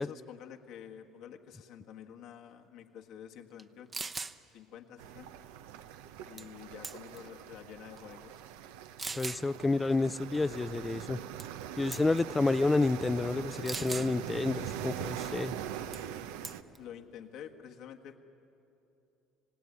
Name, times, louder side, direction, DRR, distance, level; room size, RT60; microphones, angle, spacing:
voice 1, 0.0-4.1 4.5-5.5 6.2-8.4 16.8-18.2, left 9 dB, 70° left, 2 dB, 1.6 m, -49 dB
sound 1, 3.6-3.7 3.9-4.4 6.4-6.6 6.8-7.3 8.0-8.1 9.0-9.4 11.4-11.6 11.9-12.2 13.7-14.1 15.9-16.1 16.4-16.8, right 4 dB, 25° right, 0.9 m, -39 dB
sound 2, 5.0-16.6, right 10 dB, 85° right, 0.9 m, -42 dB
voice 2, 9.2-11.2 11.8-15.6, left 3 dB, 15° left, 17 dB, 0.5 m, -29 dB
27.0 x 17.0 x 9.6 m, 2.8 s
supercardioid pair, 90°, 0 cm